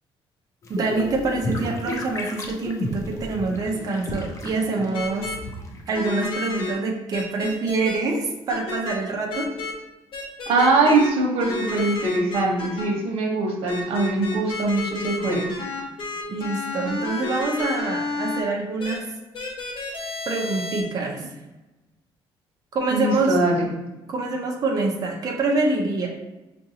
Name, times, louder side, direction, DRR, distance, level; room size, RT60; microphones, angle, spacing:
sound 1, 0.6-6.0, left 1 dB, 30° left, 0.5 m, -33 dB
voice 1, 0.7-5.3 5.9-9.5 16.3-19.1 20.3-21.3 22.7-23.4 24.1-26.1, right 3 dB, 40° right, -1 dB, 0.6 m, -25 dB
sound 2, 4.9-5.4 5.9-6.7 7.1-7.9 8.5-9.0 9.3-9.7 10.1-11.1 11.4-12.9 13.7-18.4 18.8-18.9 19.3-20.8, left 3 dB, 60° left, 1.1 m, -31 dB
voice 2, 10.5-15.5 22.9-23.7, right 2 dB, 90° right, -1 dB, 0.9 m, -22 dB
5.6 x 2.6 x 2.8 m, 1.1 s
cardioid pair, 145°, 10 cm